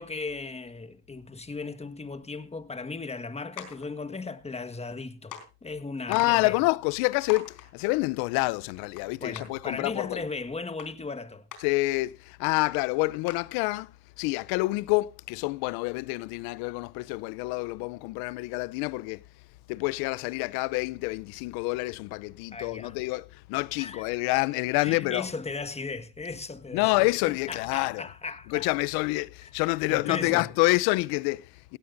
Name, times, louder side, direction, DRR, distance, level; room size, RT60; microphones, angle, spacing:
voice 1, 0.0-6.6 9.2-11.5 22.5-23.0 23.7-24.1 24.8-28.7 29.9-30.5, left 3 dB, 15° left, 1.6 m, -37 dB
sound 1, 3.6-3.9 4.9-5.0 5.3-5.5 6.1-6.3 6.8-6.9 7.3-7.7 9.0-9.1 9.4-9.5 10.8-10.9 11.5-11.6 12.2-12.3 12.6-12.7 13.3-13.5, left 9 dB, 60° left, 4.3 m, -40 dB
voice 2, 6.1-10.2 11.6-13.9 14.2-19.2 19.7-25.3 26.7-28.1 28.5-31.8, left 23 dB, 75° left, 0.6 m, -27 dB
17.0 x 17.0 x 2.6 m
supercardioid pair, 80°, 37 cm